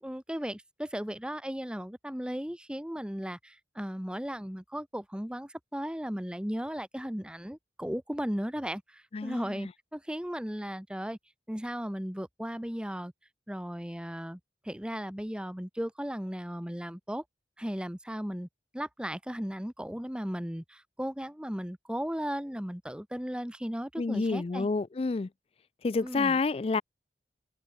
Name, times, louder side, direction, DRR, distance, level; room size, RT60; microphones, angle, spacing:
voice 1, 0.0-11.2 11.5-13.1 13.5-14.4 14.6-17.2 17.6-18.5 18.7-24.7 26.0-26.4, equal, 5° right, 1.1 m, -36 dB
voice 2, 9.1-9.7 24.0-25.3 25.8-26.8, left 4 dB, 35° left, 0.4 m, -29 dB
open air
head